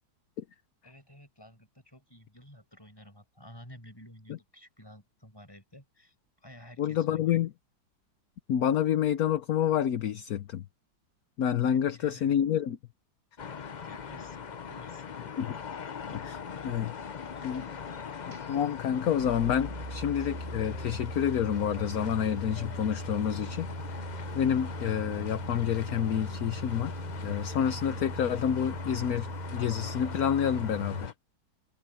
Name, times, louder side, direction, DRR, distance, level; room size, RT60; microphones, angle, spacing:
voice 1, 0.8-7.5 11.6-12.4 13.8-15.1, equal, 10° left, 5.8 m, -52 dB
voice 2, 6.8-7.5 8.5-10.6 11.4-12.8 15.4-15.5 16.1-16.4 16.6-16.9 17.4-17.6 18.3-23.7 24.3-26.9 27.2-31.1, left 9 dB, 60° left, 1.2 m, -28 dB
sound 1, 13.4-31.1, left 6 dB, 75° left, 0.4 m, -42 dB
sound 2, 17.0-31.1, right 1 dB, 25° right, 5.1 m, -40 dB
omnidirectional pair, 1.9 m